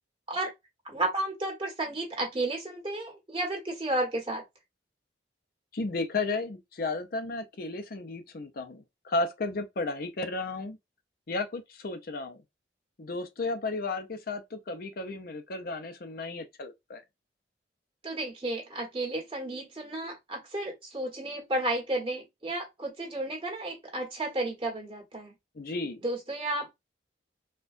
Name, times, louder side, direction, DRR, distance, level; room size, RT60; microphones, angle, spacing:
voice 1, 0.8-4.4 18.0-25.3 26.0-26.7, right 1 dB, 30° right, 1.5 m, -32 dB
voice 2, 5.7-10.8 11.3-12.4 13.0-17.0 25.6-26.0, left 3 dB, 55° left, 0.6 m, -33 dB
4.3 x 2.4 x 2.5 m
head